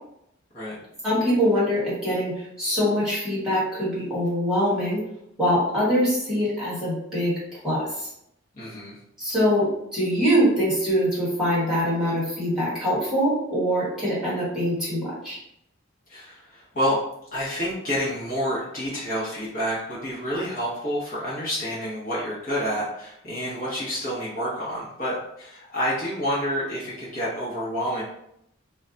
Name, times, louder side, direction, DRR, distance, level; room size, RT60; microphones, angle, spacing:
voice 1, 1.0-5.0 5.4-8.1 9.2-15.4, equal, 5° right, -9 dB, 1.3 m, -23 dB
voice 2, 8.5-9.0 16.1-17.0 17.3-28.0, equal, 40° left, -8 dB, 0.9 m, -28 dB
2.2 x 2.2 x 3.8 m, 0.77 s
head